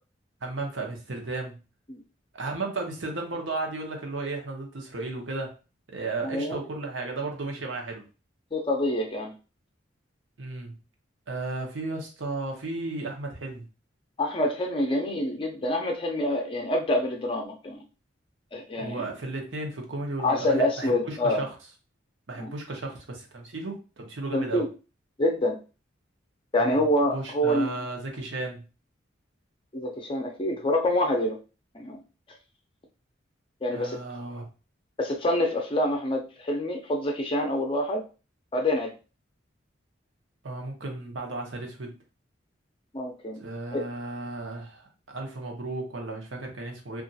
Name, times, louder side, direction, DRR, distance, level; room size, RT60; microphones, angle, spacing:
voice 1, 0.4-1.6 2.3-5.5 5.9-8.0 10.4-10.7 11.3-13.7 18.7-21.5 22.3-24.6 26.6-26.8 27.1-28.6 33.7-34.4 40.4-42.0 43.4-44.8 45.1-47.0, right 2 dB, 75° right, 1 dB, 0.8 m, -34 dB
voice 2, 6.2-6.6 8.5-9.3 14.2-17.8 18.5-19.0 20.2-21.4 22.4-22.5 24.3-24.7 25.2-25.6 26.5-27.8 29.7-31.4 31.7-32.0 33.6-34.0 35.0-38.0 38.5-38.9 42.9-43.4 43.7-43.8, left 1 dB, 25° left, 2 dB, 0.5 m, -26 dB
2.9 x 2.4 x 2.7 m, 0.33 s
head